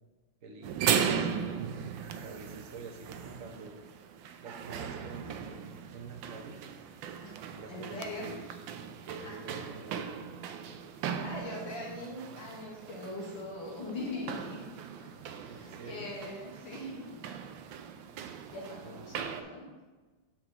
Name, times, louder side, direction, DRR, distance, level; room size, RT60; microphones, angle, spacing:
voice 1, 0.4-1.8 2.2-3.8 4.4-6.6 7.5-8.5 9.0-10.1 15.4-16.1 18.8-19.0, right 3 dB, 50° right, 2 dB, 1.2 m, -47 dB
sound 1, 0.6-19.4, right 7 dB, 90° right, 1.3 m, -38 dB
voice 2, 7.7-8.3 9.2-9.7 11.2-14.7 15.0-15.1 15.4-17.1 18.5-19.7, left 1 dB, 90° left, -4 dB, 2.3 m, -41 dB
7.7 x 6.8 x 3.0 m, 1.3 s
omnidirectional pair, 2.0 m